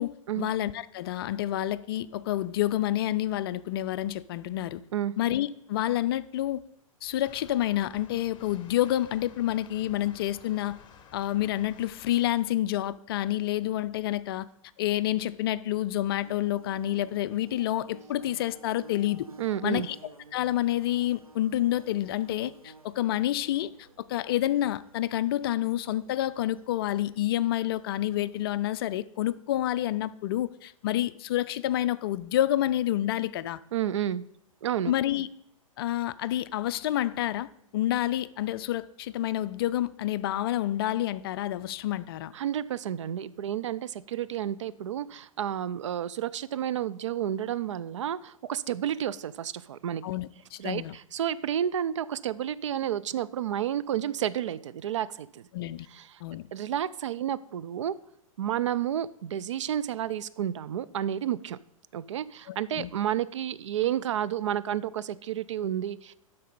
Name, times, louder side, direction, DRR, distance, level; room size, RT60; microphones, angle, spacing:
voice 1, 0.0-4.8 5.2-6.6 7.0-10.8 11.1-14.5 14.8-19.3 19.6-20.0 20.3-23.7 24.1-33.6 34.9-35.3 35.8-42.3 50.0-50.9 55.5-55.9 56.2-56.5 62.5-62.9, left 13 dB, 45° left, 0.4 m, -28 dB
sound 1, 7.2-12.3, left 7 dB, 25° left, 0.9 m, -53 dB
Bird / Buzz, 16.2-28.8, right 3 dB, 85° right, 0.8 m, -53 dB
voice 2, 19.4-19.9 33.7-34.2 34.6-34.9 42.3-50.0 50.6-55.5 55.9-56.2 56.5-57.9 58.4-61.6 61.9-66.1, right 10 dB, 60° right, 0.4 m, -31 dB
12.0 x 4.0 x 5.2 m
figure-of-eight pair, 105°, 18 cm